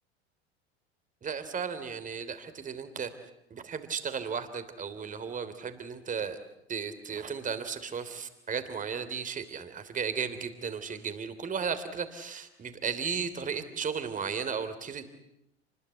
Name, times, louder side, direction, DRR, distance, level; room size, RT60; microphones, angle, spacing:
voice 1, 1.2-3.1 3.5-6.4 6.7-15.1, right 6 dB, 25° right, 11 dB, 3.3 m, -35 dB
29.0 x 21.0 x 8.4 m, 0.85 s
figure-of-eight pair, 75°, 33 cm